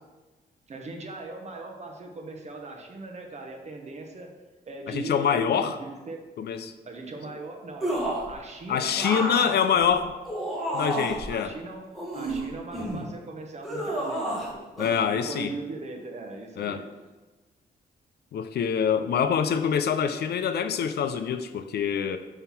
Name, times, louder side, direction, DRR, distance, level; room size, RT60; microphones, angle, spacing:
voice 1, 0.7-4.3 4.7-6.2 6.8-9.9 11.3-11.9 12.1-14.8 15.0-16.8, right 3 dB, 40° right, 2 dB, 1.2 m, -39 dB
voice 2, 4.9-5.8 6.4-6.7 8.7-10.1 10.7-11.5 14.8-15.5 16.6-16.8 18.3-22.2, left 7 dB, 65° left, 10 dB, 0.5 m, -25 dB
sound 1, 7.8-8.3 9.0-11.3 11.9-13.0 13.6-14.5 14.8-14.9, right 1 dB, ahead, 1.7 m, -30 dB
5.8 x 5.6 x 5.9 m, 1.2 s
wide cardioid pair, 145°, 18 cm